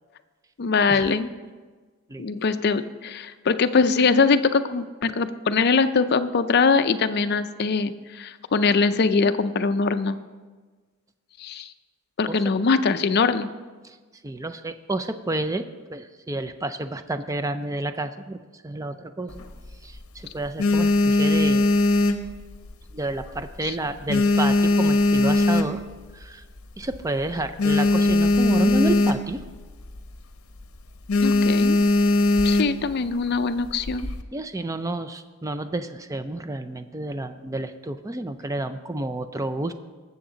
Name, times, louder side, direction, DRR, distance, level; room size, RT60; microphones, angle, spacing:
voice 1, 0.6-1.3 2.2-10.2 11.4-11.7 12.2-13.5 31.2-31.8 32.4-34.1, left 4 dB, 45° left, 10 dB, 0.5 m, -22 dB
voice 2, 14.2-19.4 19.8-21.7 22.9-25.8 26.1-26.4 26.8-29.4 34.3-39.7, right 2 dB, 15° right, 10 dB, 0.4 m, -30 dB
sound 1, 19.3-20.0 20.4-22.9 23.2-23.6 23.9-26.1 26.6-26.7 26.8-27.0 27.3-29.5 29.8-30.1 30.4-30.6 31.1-32.9 33.6-34.2, left 2 dB, 70° left, 0.8 m, -20 dB
18.5 x 7.2 x 3.9 m, 1.4 s
head